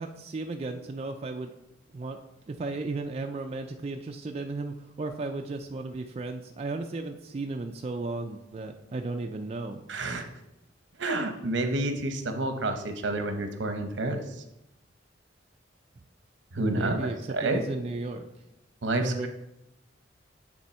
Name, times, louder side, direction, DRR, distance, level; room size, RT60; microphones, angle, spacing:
voice 1, 0.0-1.5 1.9-2.2 2.5-9.8 16.6-18.3 19.0-19.3, right 3 dB, 35° right, 3 dB, 0.3 m, -34 dB
voice 2, 9.9-10.3 11.0-14.2 16.5-17.6 18.8-19.3, right 2 dB, 75° right, 7 dB, 0.8 m, -29 dB
8.7 x 3.5 x 4.3 m, 0.88 s
head